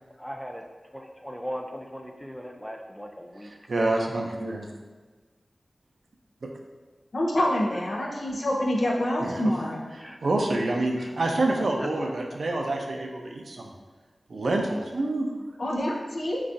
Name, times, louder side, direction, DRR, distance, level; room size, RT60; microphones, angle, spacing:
voice 1, 0.2-0.6 0.9-3.5 7.4-7.5 10.0-10.2 11.0-11.1 11.8-11.9, equal, ahead, 3 dB, 0.3 m, -38 dB
voice 2, 3.4-4.7 6.4-6.5 9.2-9.4 10.0-13.7 14.3-15.3, right 2 dB, 75° right, 1 dB, 0.4 m, -27 dB
voice 3, 7.1-9.9 15.6-16.4, left 1 dB, 70° left, -2 dB, 0.5 m, -26 dB
3.8 x 2.3 x 2.5 m, 1.3 s
wide cardioid pair, 55°, 0 cm